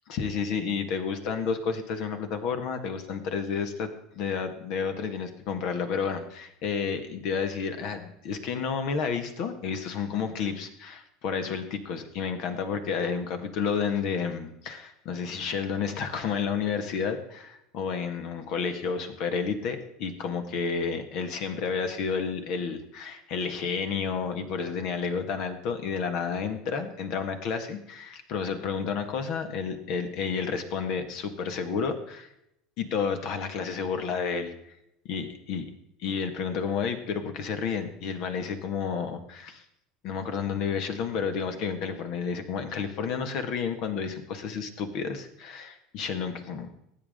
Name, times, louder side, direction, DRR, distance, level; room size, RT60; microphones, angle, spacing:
voice 1, 0.1-3.9 4.1-32.3 32.8-34.5 35.1-35.7 36.0-39.6 40.0-46.7, left 6 dB, 55° left, 8 dB, 1.8 m, -31 dB
19.5 x 9.1 x 3.8 m, 0.79 s
figure-of-eight pair, 75°, 0 cm